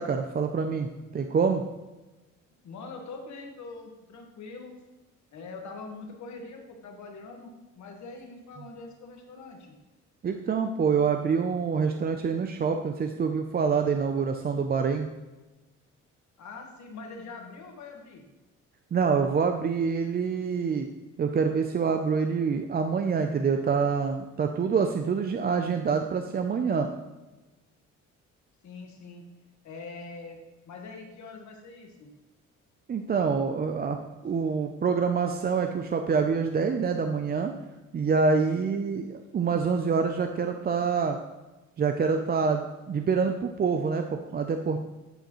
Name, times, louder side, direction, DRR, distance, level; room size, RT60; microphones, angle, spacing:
voice 1, 0.0-1.6 10.2-15.1 18.9-20.9 21.2-26.9 32.9-34.0 34.2-37.5 37.9-41.2 41.8-44.8, right 5 dB, 30° right, 6 dB, 0.4 m, -26 dB
voice 2, 2.6-4.7 5.3-9.7 16.4-18.2 28.6-29.2 29.6-30.4 30.6-32.1 38.3-38.6, left 3 dB, 70° left, 3 dB, 1.5 m, -43 dB
11.5 x 4.8 x 3.0 m, 1.1 s
cardioid pair, 90°, 30 cm